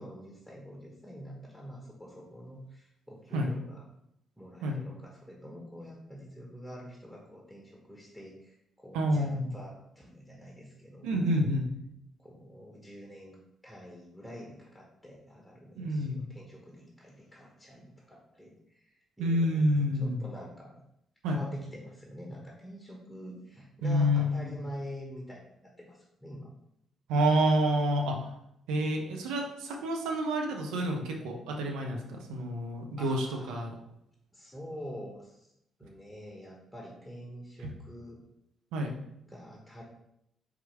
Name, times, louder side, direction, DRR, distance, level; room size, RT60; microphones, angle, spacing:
voice 1, 0.0-3.8 4.4-11.5 12.2-20.8 21.3-26.5 33.0-33.7 34.3-35.5 35.8-38.2 39.3-39.8, equal, ahead, -1 dB, 1.0 m, -46 dB
voice 2, 8.9-9.5 11.0-11.7 15.8-16.2 19.2-20.2 21.2-21.4 23.8-24.5 27.1-28.3 28.7-33.7 37.6-37.7 38.7-38.9, equal, 70° right, 2 dB, 0.5 m, -28 dB
4.5 x 3.5 x 3.2 m, 0.77 s
figure-of-eight pair, 40°, 0 cm